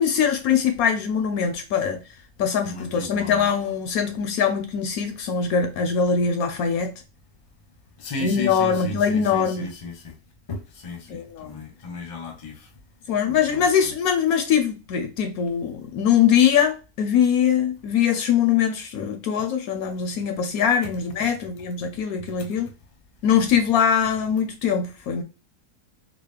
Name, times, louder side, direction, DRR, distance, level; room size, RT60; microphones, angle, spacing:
voice 1, 0.0-2.0 2.4-6.9 8.2-9.7 11.1-11.6 13.1-22.7 23.2-25.2, left 7 dB, 75° left, 1.0 m, -22 dB
voice 2, 2.6-3.5 8.0-10.1 10.5-12.7 13.3-13.9, left 2 dB, 30° left, 0.6 m, -35 dB
4.0 x 2.1 x 3.3 m
omnidirectional pair, 1.7 m